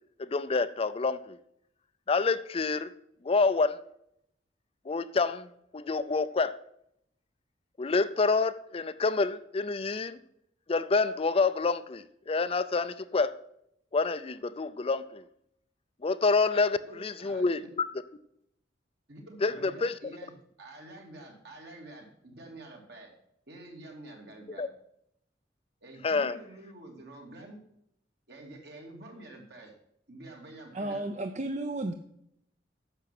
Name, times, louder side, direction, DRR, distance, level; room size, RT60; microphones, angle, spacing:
voice 1, 0.2-1.4 2.1-2.9 3.2-3.8 4.9-6.6 7.8-10.2 10.7-13.3 13.9-15.2 16.0-17.6 19.4-19.9 24.6-24.7 26.0-26.4, left 4 dB, 35° left, 0.5 m, -27 dB
voice 2, 16.9-17.5 19.1-23.1 23.5-24.7 25.8-27.6 28.3-29.7 30.1-31.1, right 2 dB, 65° right, 2.7 m, -48 dB
voice 3, 30.7-31.9, right 2 dB, 40° right, 0.6 m, -33 dB
9.9 x 6.9 x 5.9 m
head